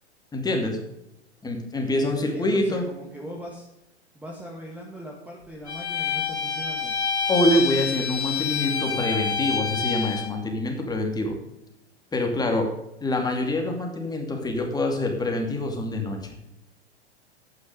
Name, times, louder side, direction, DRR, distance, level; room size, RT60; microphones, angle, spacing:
voice 1, 0.3-0.8 1.4-2.9 7.3-11.4 12.1-12.7 13.0-16.2, left 1 dB, 10° left, 2 dB, 2.6 m, -25 dB
voice 2, 2.0-3.7 4.1-6.9, right 1 dB, 5° right, -2 dB, 1.8 m, -39 dB
Bowed string instrument, 5.7-10.3, left 6 dB, 70° left, 2.5 m, -27 dB
11.5 x 9.3 x 5.2 m, 0.88 s
figure-of-eight pair, 95°, 34 cm